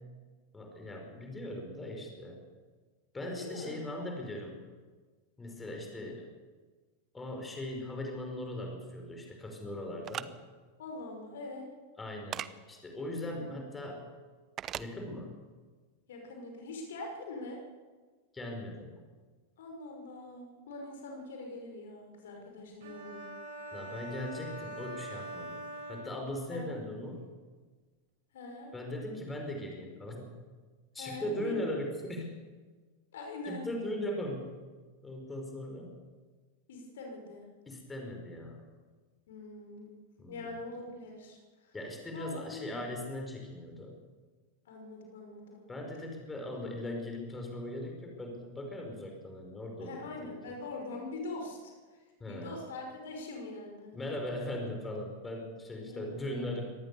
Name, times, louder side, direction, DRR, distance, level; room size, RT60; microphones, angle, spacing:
voice 1, 0.5-2.4 3.1-4.6 5.4-6.3 7.1-10.3 12.0-12.4 12.7-14.0 14.8-15.3 18.3-18.9 23.7-27.2 28.7-30.3 30.9-32.4 33.5-34.6 35.0-36.0 37.7-38.7 40.2-40.6 41.7-44.0 45.7-50.3 52.2-52.6 53.9-56.7, left 1 dB, 15° left, 2 dB, 5.4 m, -39 dB
voice 2, 3.3-4.0 10.8-11.7 13.2-13.6 16.1-17.6 19.6-23.3 26.5-26.6 28.3-28.7 31.0-31.8 33.1-33.7 36.7-37.5 39.3-40.0 40.3-41.7 42.1-42.8 44.7-45.6 49.8-52.0 52.2-54.0 55.9-56.5, left 2 dB, 60° left, 2 dB, 5.8 m, -43 dB
sound 1, 10.0-10.3 12.3-12.5 14.6-14.9, right 10 dB, 30° right, 0.9 m, -37 dB
sound 2, 22.8-26.7, right 1 dB, 55° right, 5.4 m, -44 dB
24.5 x 18.5 x 7.1 m, 1.4 s
figure-of-eight pair, 90°, 0 cm